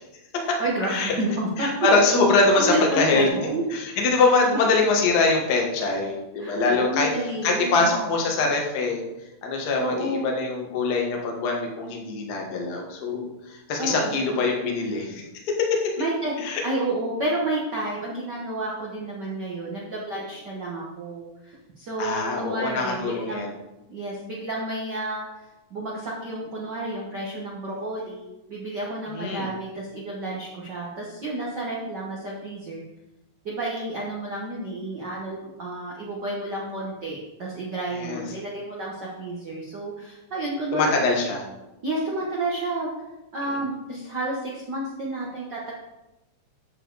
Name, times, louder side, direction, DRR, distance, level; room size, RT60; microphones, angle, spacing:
voice 1, 0.4-1.7 2.5-3.6 6.4-8.1 9.8-10.3 13.8-14.3 16.0-23.5 23.9-25.3 25.7-32.8 33.4-40.9 41.8-42.9 43.3-45.7, right 1 dB, 80° right, -4 dB, 0.9 m, -30 dB
voice 2, 1.6-3.3 3.7-7.1 7.4-9.0 9.4-15.8 16.4-16.6 22.0-23.5 29.1-29.5 38.0-38.2 40.7-41.4 43.5-43.6, left 3 dB, 55° left, 0 dB, 1.1 m, -23 dB
8.7 x 6.8 x 4.0 m, 0.96 s
omnidirectional pair, 4.0 m